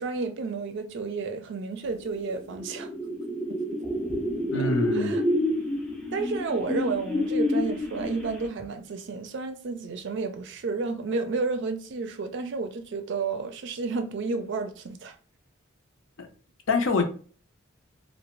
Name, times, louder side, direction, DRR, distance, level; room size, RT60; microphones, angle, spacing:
voice 1, 0.0-2.9 4.6-5.2 6.1-15.1, right 4 dB, 65° right, 0.4 m, -31 dB
sound 1, 2.1-8.6, left 1 dB, 5° left, 0.4 m, -29 dB
voice 2, 4.5-5.2 16.2-16.3 16.7-17.1, left 3 dB, 70° left, 0.6 m, -25 dB
2.5 x 2.1 x 3.0 m
head